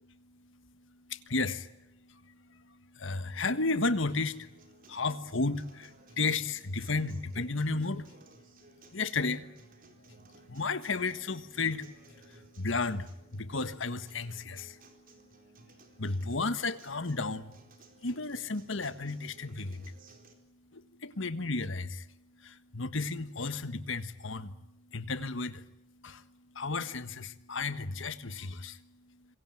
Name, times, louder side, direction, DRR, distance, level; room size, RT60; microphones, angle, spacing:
voice 1, 1.1-1.7 2.1-2.2 2.9-4.5 4.9-8.1 8.9-9.4 10.5-11.8 12.3-14.8 16.0-17.5 18.0-19.9 20.7-22.1 22.4-24.5 24.9-25.6 26.0-26.2 26.5-28.8, left 3 dB, 65° left, 1.5 m, -33 dB
Acoustic guitar, 4.3-20.3, right 3 dB, 45° right, 4.2 m, -59 dB
26.5 x 22.5 x 9.2 m
head